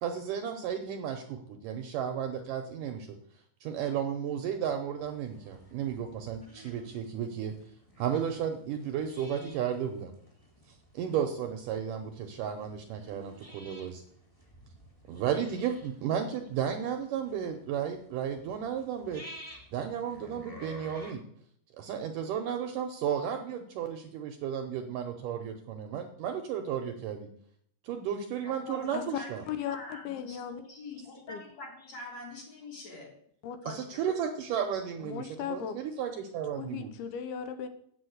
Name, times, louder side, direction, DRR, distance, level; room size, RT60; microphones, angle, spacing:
voice 1, 0.0-3.1 3.6-7.5 8.0-10.1 10.9-14.0 15.1-19.2 19.7-21.2 21.8-27.3 27.8-29.4 33.7-36.9, right 8 dB, 75° right, 5 dB, 2.1 m, -33 dB
sound 1, 5.0-21.1, equal, 5° left, 1.8 m, -52 dB
voice 2, 28.4-29.3 29.6-33.1 33.6-34.1, left 2 dB, 45° left, -2 dB, 4.1 m, -44 dB
voice 3, 29.5-30.6 31.3-31.4 33.4-33.6 35.0-35.8 36.6-37.7, left 9 dB, 80° left, 9 dB, 2.7 m, -36 dB
8.3 x 7.4 x 7.9 m, 0.66 s
omnidirectional pair, 4.5 m